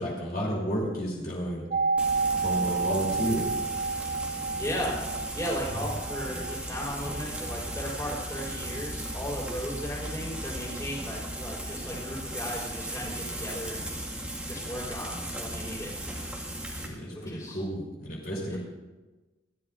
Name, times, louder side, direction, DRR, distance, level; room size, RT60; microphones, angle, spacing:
voice 1, 0.0-1.6 2.4-3.4 16.8-18.6, equal, 50° left, -4 dB, 3.4 m, -31 dB
sound 1, 1.7-11.4 11.7-11.8, right 4 dB, 40° right, 0.7 m, -32 dB
Frying (food), 2.0-16.9, right 1 dB, 5° right, 1.8 m, -36 dB
voice 2, 4.6-13.9 14.5-15.9 17.1-17.6 18.5-18.6, equal, 20° left, -5 dB, 4.3 m, -36 dB
29.5 x 11.5 x 2.5 m, 1.2 s
head